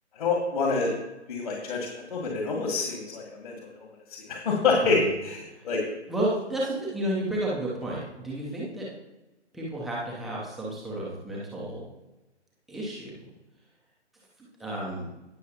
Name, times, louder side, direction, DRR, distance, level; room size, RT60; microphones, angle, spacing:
voice 1, 0.2-0.9 1.3-3.9 4.3-5.8, left 3 dB, 45° left, 0 dB, 2.1 m, -27 dB
voice 2, 6.1-8.9 9.5-11.8 12.7-13.2 14.4-15.1, right 1 dB, ahead, -6 dB, 0.6 m, -32 dB
18.0 x 6.3 x 2.9 m, 1.0 s
figure-of-eight pair, 140°, 35 cm